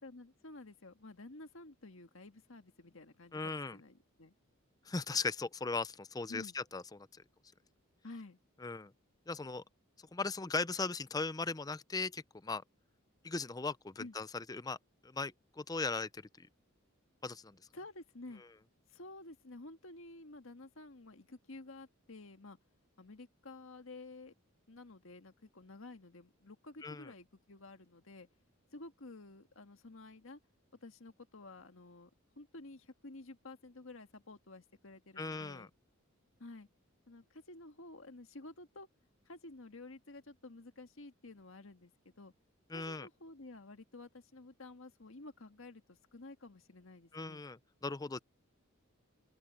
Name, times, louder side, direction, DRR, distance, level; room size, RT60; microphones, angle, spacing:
voice 1, 0.0-4.3 6.3-6.5 8.0-8.4 14.0-14.1 17.7-18.4 18.9-22.6 23.0-24.3 24.7-28.3 28.7-30.4 30.8-32.1 32.4-35.7 36.4-36.7 37.1-38.9 39.2-41.9 42.2-42.3 42.7-47.4, left 2 dB, 70° left, 1.6 m, -52 dB
voice 2, 3.3-3.8 4.9-6.8 8.6-8.9 9.3-9.6 10.1-12.6 13.2-14.8 15.1-16.5 17.2-17.6 26.8-27.1 35.2-35.7 42.7-43.1 47.1-47.6 47.8-48.2, left 3 dB, 20° left, 0.5 m, -38 dB
open air
head